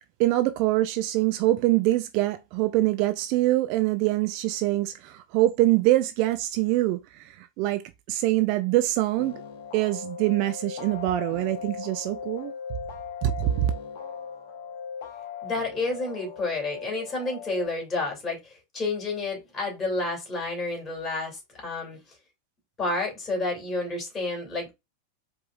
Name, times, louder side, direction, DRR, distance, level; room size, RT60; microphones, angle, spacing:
voice 1, 0.2-9.4 9.7-12.5 13.2-13.7, right 16 dB, 45° right, 0.4 m, -24 dB
sound 1, 9.2-17.7, left 7 dB, 50° left, 0.9 m, -39 dB
voice 2, 15.4-22.0 22.8-24.7, left 3 dB, 20° left, 2.6 m, -30 dB
4.7 x 3.6 x 2.4 m
figure-of-eight pair, 90°, 0 cm